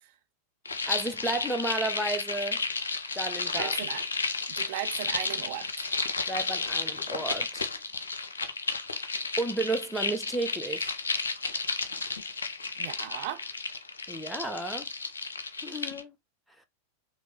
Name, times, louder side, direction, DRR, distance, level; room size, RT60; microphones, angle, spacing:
sound 1, 0.6-16.0, left 4 dB, 70° left, 0.7 m, -32 dB
voice 1, 0.9-2.6 3.1-3.8 6.3-7.7 9.4-10.9 14.1-14.9 15.6-16.2, right 2 dB, ahead, 0.8 m, -32 dB
voice 2, 3.5-4.0 4.5-5.9 12.8-13.4, right 13 dB, 50° right, 0.6 m, -36 dB
4.7 x 3.0 x 3.2 m
figure-of-eight pair, 90°, 0 cm